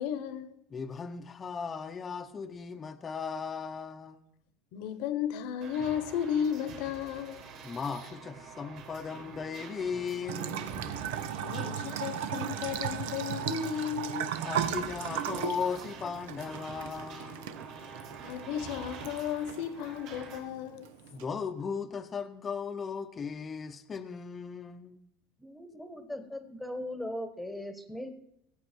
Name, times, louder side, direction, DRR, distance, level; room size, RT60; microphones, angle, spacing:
voice 1, 0.0-0.6 4.7-7.4 11.4-14.3 18.2-20.9, left 8 dB, 65° left, 1.1 m, -34 dB
voice 2, 0.7-4.2 7.6-10.9 14.4-17.6 21.1-25.0, left 6 dB, 20° left, 0.7 m, -37 dB
sound 1, 5.6-20.4, right 5 dB, 55° right, 4.3 m, -47 dB
Bathtub (filling or washing) / Trickle dribble, 10.3-21.2, right 9 dB, 85° right, 0.9 m, -37 dB
voice 3, 25.4-28.1, left 1 dB, ahead, 1.2 m, -39 dB
19.0 x 8.5 x 4.5 m
supercardioid pair, 145°, 0 cm